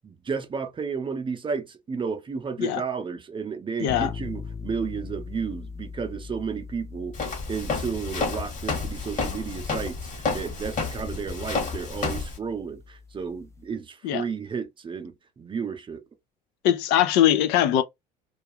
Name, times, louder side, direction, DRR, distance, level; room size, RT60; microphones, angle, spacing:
voice 1, 0.0-16.0, right 5 dB, 30° right, 0.6 m, -32 dB
sound 1, 3.9-13.7, left 5 dB, 15° left, 0.5 m, -41 dB
Walk footsteps, 7.1-12.4, left 4 dB, 45° left, 1.2 m, -30 dB
voice 2, 16.6-17.8, left 11 dB, 75° left, 0.4 m, -21 dB
2.4 x 2.3 x 2.8 m
supercardioid pair, 80°, 18 cm